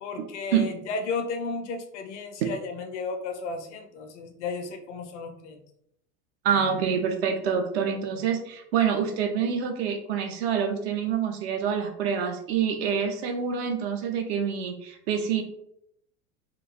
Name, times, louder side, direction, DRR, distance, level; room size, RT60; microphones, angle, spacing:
voice 1, 0.0-5.6, left 4 dB, 50° left, 5 dB, 0.5 m, -34 dB
voice 2, 6.4-15.4, right 7 dB, 45° right, 4 dB, 0.5 m, -26 dB
3.0 x 2.2 x 2.4 m, 0.73 s
figure-of-eight pair, 75°, 47 cm